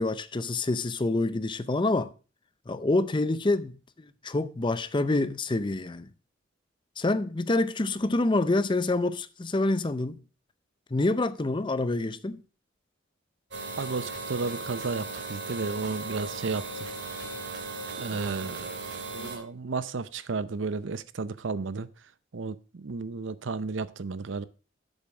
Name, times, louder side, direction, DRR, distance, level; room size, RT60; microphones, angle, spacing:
voice 1, 0.0-2.1 2.7-6.1 7.0-10.2 10.9-12.4 19.2-19.3, left 2 dB, 25° left, 0.5 m, -27 dB
sound 1, 13.5-19.4, right 3 dB, 65° right, 2.9 m, -37 dB
voice 2, 13.8-16.9 17.1-17.2 18.0-18.8 19.1-21.9 22.3-24.5, right 4 dB, 85° right, 0.6 m, -33 dB
8.0 x 7.2 x 6.0 m
head